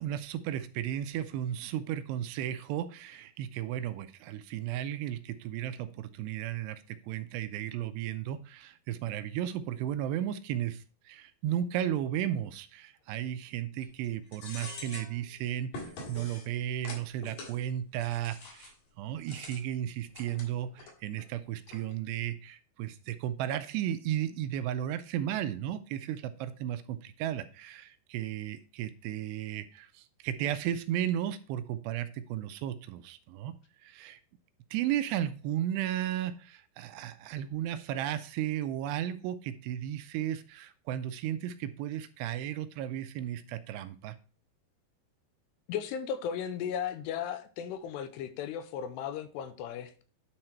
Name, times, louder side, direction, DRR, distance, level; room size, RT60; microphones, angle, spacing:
voice 1, 0.0-33.5 33.8-34.2 34.7-44.2, right 11 dB, 80° right, 2.6 m, -34 dB
sound 1, 13.8-14.1 14.3-15.2 15.7-16.5 16.8-17.6 18.0-18.8 19.2-19.6 20.1-20.9 21.2-21.3 21.7-22.0, left 3 dB, 55° left, 3.2 m, -44 dB
voice 2, 45.7-50.0, left 8 dB, 85° left, 2.7 m, -36 dB
10.0 x 3.9 x 4.4 m
omnidirectional pair, 5.0 m